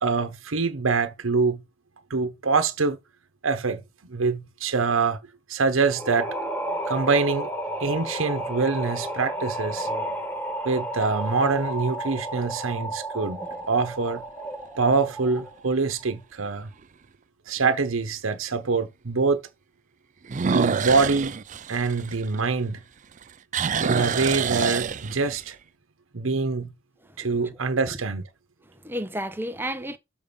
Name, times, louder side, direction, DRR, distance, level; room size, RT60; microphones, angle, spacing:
voice 1, 0.0-1.6 2.1-3.0 3.4-3.8 4.1-5.2 5.5-6.3 6.9-7.5 7.8-9.9 10.6-13.4 13.7-14.2 14.8-16.7 17.5-19.4 20.4-21.3 21.7-22.8 23.8-25.6 26.1-26.7 27.2-28.2, right 4 dB, 85° right, 0.9 m, -24 dB
sound 1, 5.9-15.6, right 1 dB, 15° left, 1.7 m, -32 dB
sound 2, 6.6-7.3 7.9-8.0 13.3-13.7 14.2-14.3 14.9-15.0 15.2-15.3 16.8-16.9 20.2-22.8 23.1-25.5, right 6 dB, 40° right, 0.4 m, -27 dB
voice 2, 27.0-27.6 27.9-28.0 28.7-30.0, equal, 10° right, 0.8 m, -33 dB
7.0 x 5.0 x 5.3 m
head